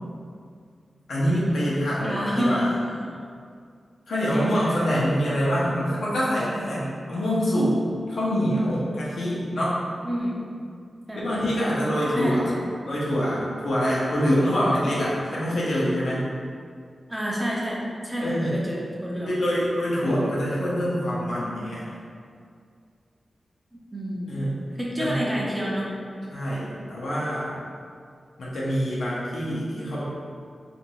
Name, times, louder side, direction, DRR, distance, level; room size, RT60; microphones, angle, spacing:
voice 1, 1.1-2.8 4.1-7.8 8.1-9.8 11.1-12.4 12.9-16.3 18.2-18.5 19.3-21.9 24.3-24.5 25.0-25.1 26.3-27.6 28.4-30.0, equal, 85° left, -7 dB, 0.7 m, -25 dB
voice 2, 2.0-2.7 4.1-5.0 10.0-10.4 11.1-11.2 12.1-12.7 17.1-19.4 23.7-24.4 24.8-25.9, equal, 15° right, -5 dB, 0.6 m, -29 dB
2.6 x 2.5 x 3.0 m, 2.2 s
wide cardioid pair, 85°, 0 cm